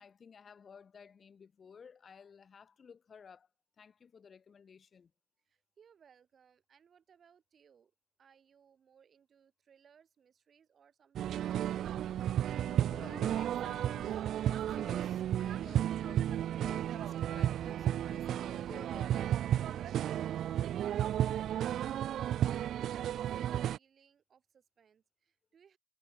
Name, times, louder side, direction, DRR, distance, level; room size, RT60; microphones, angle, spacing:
voice 1, 0.0-3.5 3.8-5.1 12.6-19.9, left 6 dB, 45° left, 2.0 m, -55 dB
voice 2, 5.4-7.9 8.2-11.8 22.7-25.8, right 7 dB, 50° right, 6.5 m, -65 dB
sound 1, 11.2-23.8, right 11 dB, 75° right, 0.4 m, -33 dB
cardioid pair, 90°, 0 cm